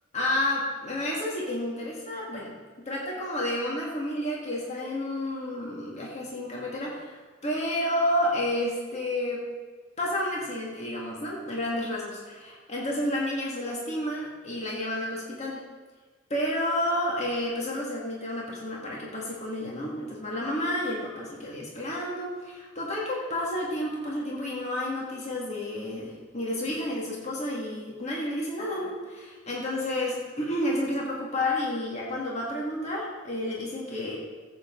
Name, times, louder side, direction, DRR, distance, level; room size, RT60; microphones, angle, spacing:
voice 1, 0.1-9.4 10.0-15.6 16.3-34.2, left 1 dB, 35° left, -4 dB, 2.1 m, -30 dB
14.5 x 8.2 x 3.9 m, 1.4 s
head